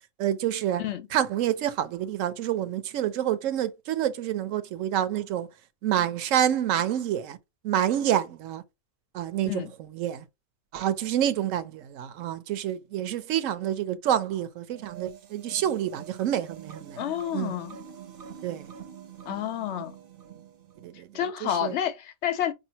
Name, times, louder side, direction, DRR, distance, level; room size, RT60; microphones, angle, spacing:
voice 1, 0.2-0.8 1.1-5.5 5.8-7.4 7.6-8.6 9.1-10.3 10.7-17.0 17.3-17.6 18.4-18.7 20.8-21.1 21.4-21.8, right 11 dB, 80° right, 1.0 m, -28 dB
sound 1, 14.7-21.0, right 8 dB, 50° right, 0.7 m, -45 dB
voice 2, 17.0-17.8 19.3-19.9 21.1-22.5, left 10 dB, 70° left, 0.8 m, -29 dB
5.0 x 2.7 x 2.8 m
omnidirectional pair, 1.3 m